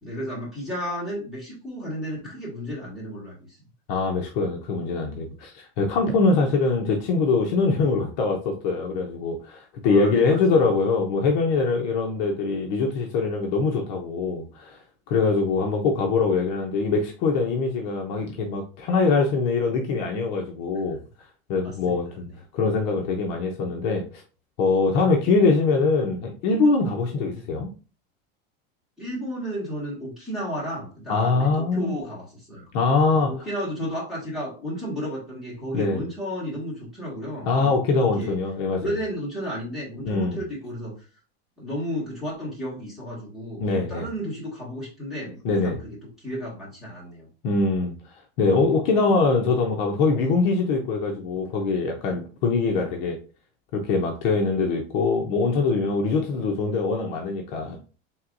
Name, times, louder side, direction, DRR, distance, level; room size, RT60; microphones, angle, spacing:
voice 1, 0.0-3.6 9.8-10.4 21.6-22.0 29.0-32.7 33.2-37.7 38.2-38.4 38.7-40.9 41.6-45.8 46.2-47.3, equal, ahead, 1.8 m, -33 dB
voice 2, 3.9-21.0 21.5-22.3 22.5-24.2 24.6-27.7 31.1-31.9 32.7-33.3 35.7-36.0 37.5-38.9 40.0-40.4 43.6-44.1 45.4-45.8 47.4-53.2 53.7-57.8, left 4 dB, 45° left, 0.7 m, -23 dB
4.4 x 3.4 x 2.5 m
supercardioid pair, 165°, 32 cm